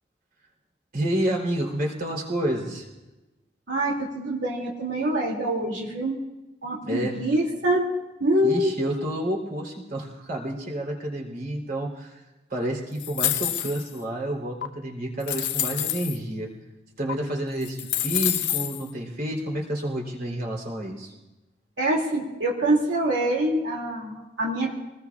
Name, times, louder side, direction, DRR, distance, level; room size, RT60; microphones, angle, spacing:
voice 1, 0.9-2.9 6.8-7.2 8.4-12.2 12.5-16.5 17.0-21.1, right 1 dB, 50° right, -2 dB, 3.6 m, -29 dB
voice 2, 3.7-6.2 6.6-7.8 8.2-8.8 21.8-24.7, right 1 dB, 85° right, -2 dB, 2.6 m, -25 dB
sound 1, 13.0-14.0 14.6-14.7 15.2-16.2 17.1-17.2 17.6-18.8, left 11 dB, 70° left, 0.8 m, -27 dB
29.0 x 20.0 x 2.4 m, 1.1 s
head